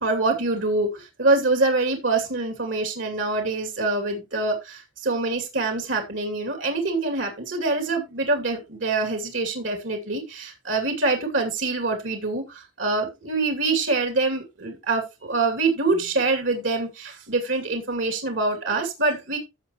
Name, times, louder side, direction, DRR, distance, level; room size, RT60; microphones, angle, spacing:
voice 1, 0.0-19.4, right 3 dB, 75° right, 2.4 m, -25 dB
15.0 x 5.6 x 2.9 m
head